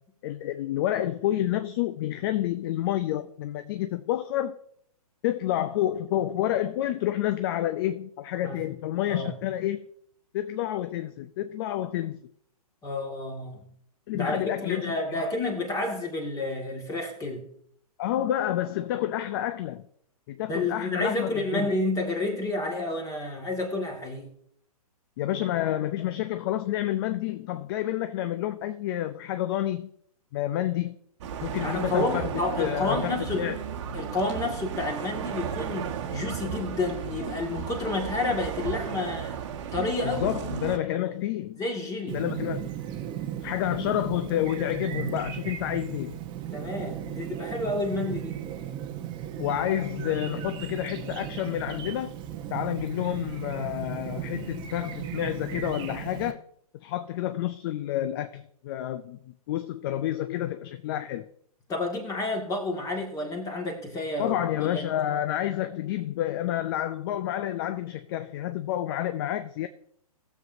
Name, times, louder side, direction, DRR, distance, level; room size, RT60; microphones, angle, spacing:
voice 1, 0.2-4.6 5.2-9.8 10.3-12.2 14.1-15.3 18.0-19.8 20.3-21.7 25.2-29.9 30.3-31.0 31.4-33.6 40.0-41.6 42.1-42.7 43.4-46.2 49.4-52.1 52.5-56.4 56.7-61.3 64.2-69.7, left 12 dB, 35° left, 0.5 m, -29 dB
voice 2, 9.1-9.4 12.8-13.6 14.1-17.4 20.5-24.3 31.6-33.5 33.9-39.4 39.7-40.3 41.6-42.2 46.5-48.4 61.7-64.9, left 2 dB, 20° left, 1.8 m, -30 dB
sound 1, 31.2-40.8, right 8 dB, 50° right, 1.2 m, -34 dB
Chirp tweet, 42.1-56.3, right 11 dB, 25° right, 0.8 m, -36 dB
18.0 x 7.2 x 2.6 m
hypercardioid pair, 130°, 20 cm